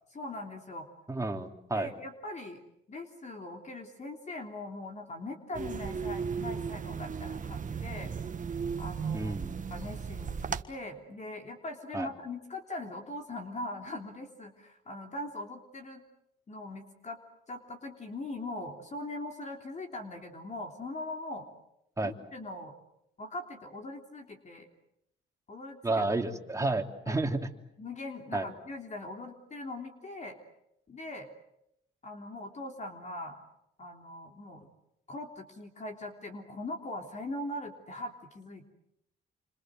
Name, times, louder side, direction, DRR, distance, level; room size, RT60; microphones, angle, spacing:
voice 1, 0.1-0.9 1.7-2.6 2.9-8.1 8.8-9.4 9.7-16.0 16.5-17.2 17.5-21.5 22.0-22.8 23.2-24.7 25.5-26.3 27.1-27.2 27.8-30.4 30.9-31.3 32.0-33.4 33.8-34.7 35.1-38.7, left 2 dB, 35° left, 3 dB, 3.4 m, -41 dB
voice 2, 1.1-1.9 9.1-9.6 11.9-12.1 22.0-22.1 25.8-27.4 28.3-28.5, right 2 dB, 15° right, 3 dB, 3.1 m, -31 dB
sound 1, 5.5-10.6, right 6 dB, 40° right, 1.5 m, -36 dB
28.5 x 26.0 x 7.8 m, 0.82 s
cardioid pair, 90°, 20 cm